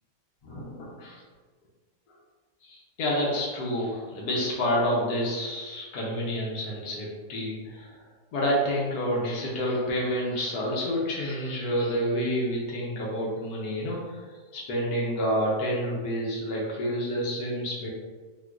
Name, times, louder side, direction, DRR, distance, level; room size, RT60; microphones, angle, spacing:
voice 1, 0.4-1.2 2.6-8.0 8.3-14.2 14.5-17.9, equal, 80° left, -4 dB, 1.2 m, -29 dB
3.6 x 2.5 x 2.4 m, 1.4 s
omnidirectional pair, 1.7 m